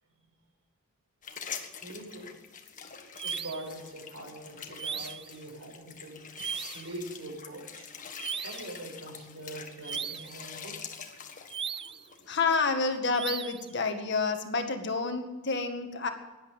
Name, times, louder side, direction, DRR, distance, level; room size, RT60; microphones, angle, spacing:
sound 1, 1.2-13.0, left 7 dB, 40° left, 1.6 m, -45 dB
voice 1, 1.8-2.3 3.2-6.2 6.7-7.9 8.4-10.7, right 1 dB, 85° right, 1 dB, 6.9 m, -43 dB
sound 2, 3.2-3.7 4.8-5.3 6.4-6.9 8.2-8.7 9.8-10.4 11.5-12.1 13.1-13.7, right 7 dB, 25° right, 0.4 m, -37 dB
voice 2, 12.3-16.1, left 4 dB, 60° left, 5 dB, 1.9 m, -29 dB
17.0 x 11.0 x 7.3 m, 1.1 s
head